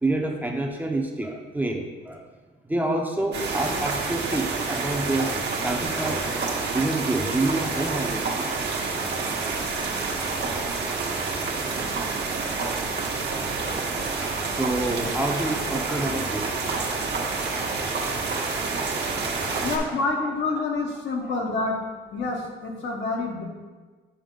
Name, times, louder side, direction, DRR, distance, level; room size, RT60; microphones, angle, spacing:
voice 1, 0.0-2.3 2.6-8.5 10.1-11.7 12.3-12.9 14.2-17.2 17.5-18.0 19.1-20.3 21.2-21.7, right 2 dB, 10° right, 1 dB, 0.8 m, -29 dB
sound 1, 3.3-19.8, right 4 dB, 60° right, 1.2 m, -28 dB
voice 2, 19.6-21.8 22.1-23.4, left 3 dB, 65° left, 0 dB, 1.3 m, -27 dB
6.9 x 4.3 x 3.9 m, 1.4 s
cardioid pair, 90°, 20 cm